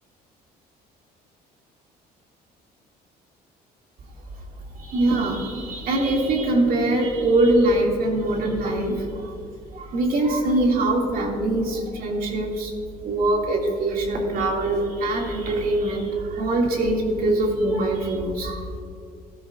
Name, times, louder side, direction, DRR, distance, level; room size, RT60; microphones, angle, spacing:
voice 1, 4.7-9.3 9.7-12.7 13.0-18.8, right 2 dB, 60° right, 0 dB, 2.3 m, -23 dB
16.0 x 13.0 x 2.5 m, 2.3 s
cardioid pair, 110°, 17 cm